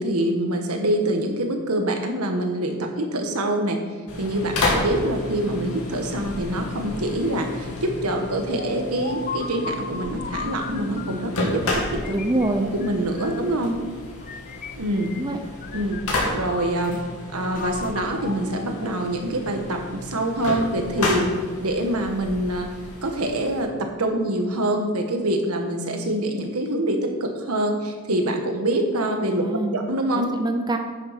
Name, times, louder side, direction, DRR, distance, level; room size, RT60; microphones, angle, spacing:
voice 1, 0.0-3.8 4.2-12.1 12.7-13.7 14.8-15.1 15.7-16.0 16.3-17.0 17.3-21.3 21.6-22.7 23.0-29.4 29.7-30.3, right 1 dB, 85° right, 4 dB, 1.5 m, -25 dB
sound 1, 4.1-23.6, left 2 dB, 80° left, 2.5 m, -32 dB
sound 2, 8.6-11.3 11.8-13.6 14.2-15.3 15.6-17.1 17.5-19.3, left 5 dB, 35° left, 0.5 m, -37 dB
voice 2, 12.1-12.7 15.0-15.4 29.3-29.8 30.1-30.8, right 2 dB, 20° right, 5 dB, 0.6 m, -25 dB
10.0 x 7.0 x 5.9 m, 1.5 s
head